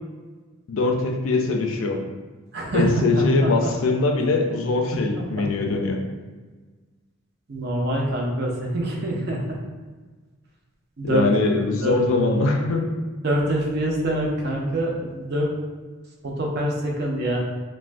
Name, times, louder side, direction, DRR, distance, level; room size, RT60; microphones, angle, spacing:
voice 1, 0.7-2.0 2.7-6.0 11.0-12.8, left 3 dB, 65° left, 2 dB, 0.4 m, -22 dB
voice 2, 2.5-3.5 5.2-5.3 7.5-9.6 11.0-11.2 11.8-11.9 13.2-15.5 16.2-17.4, right 1 dB, 45° right, -1 dB, 0.5 m, -25 dB
3.2 x 2.1 x 2.5 m, 1.3 s
head